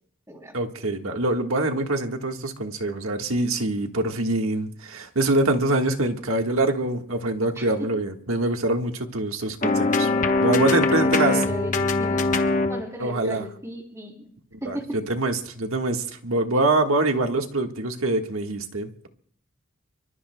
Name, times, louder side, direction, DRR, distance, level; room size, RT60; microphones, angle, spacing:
voice 1, 0.5-10.1 10.4-11.4 13.0-13.4 14.6-19.1, right 2 dB, 75° right, 4 dB, 1.5 m, -24 dB
sound 1, 9.6-12.8, left 3 dB, 35° left, 1.0 m, -22 dB
voice 2, 10.6-12.3 12.7-14.3 14.6-14.9, equal, 15° right, 1 dB, 3.1 m, -36 dB
25.0 x 24.0 x 2.2 m, 0.64 s
head